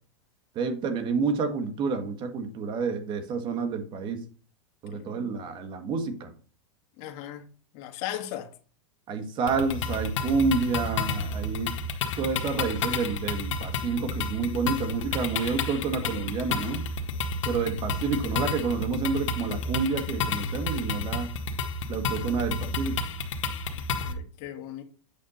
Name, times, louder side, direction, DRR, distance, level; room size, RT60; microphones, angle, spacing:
voice 1, 0.5-4.2 4.8-6.3 9.1-11.7 12.2-16.8 17.4-21.3 21.9-23.0, right 4 dB, 30° right, 1.5 m, -29 dB
voice 2, 4.9-5.4 7.0-7.4 7.7-8.5 17.5-17.7 23.7-24.8, left 12 dB, 45° left, 1.6 m, -38 dB
sound 1, 9.5-24.1, left 3 dB, 80° left, 1.5 m, -31 dB
8.6 x 6.4 x 4.1 m
supercardioid pair, 145°, 16 cm